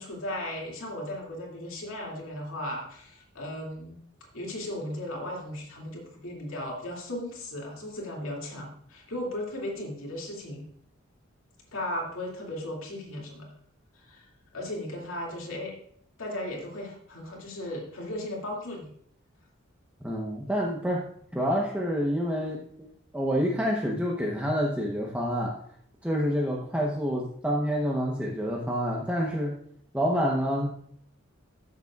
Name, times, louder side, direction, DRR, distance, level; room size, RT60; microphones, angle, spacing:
voice 1, 0.0-4.0 4.3-10.6 11.7-13.5 13.9-14.3 14.5-15.7 16.2-18.9, left 1 dB, 80° left, -2 dB, 2.3 m, -36 dB
voice 2, 20.0-21.1 21.3-22.9 23.1-25.6 26.0-29.5 29.9-30.7, equal, 5° right, -2 dB, 0.8 m, -28 dB
13.0 x 6.7 x 2.3 m, 0.65 s
head